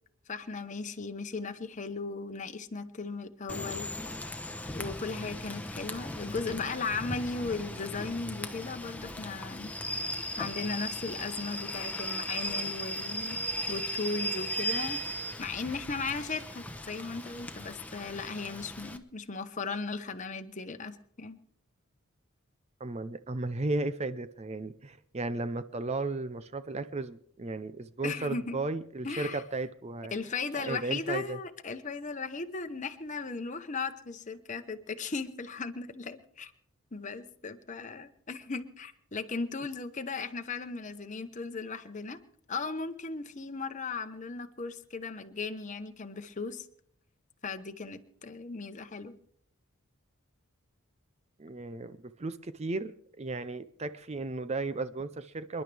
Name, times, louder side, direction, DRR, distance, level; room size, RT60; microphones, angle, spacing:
voice 1, 0.3-4.2 4.7-9.7 10.4-21.4 28.0-28.6 29.0-29.4 30.1-36.5 36.9-42.2 42.5-46.7 47.4-49.2, left 4 dB, 35° left, 7 dB, 0.9 m, -37 dB
Rain / Train, 3.5-19.0, equal, 5° left, 1.0 m, -37 dB
voice 2, 22.8-30.1 30.6-31.4 51.4-52.9 53.2-55.6, right 2 dB, 30° right, 12 dB, 0.6 m, -35 dB
28.0 x 11.0 x 3.4 m, 0.66 s
head